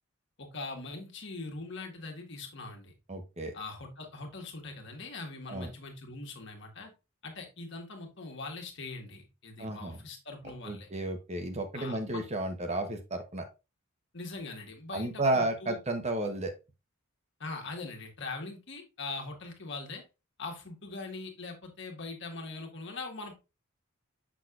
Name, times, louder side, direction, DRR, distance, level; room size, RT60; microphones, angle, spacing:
voice 1, 0.4-2.9 3.5-6.9 7.2-10.9 11.7-12.2 14.1-15.8 17.4-20.0 20.4-23.4, left 3 dB, 60° left, 2 dB, 1.6 m, -41 dB
voice 2, 3.1-3.5 5.5-5.7 9.6-10.0 10.6-13.4 14.9-16.5, right 2 dB, 30° right, 6 dB, 0.9 m, -32 dB
6.2 x 6.2 x 2.4 m, 0.27 s
head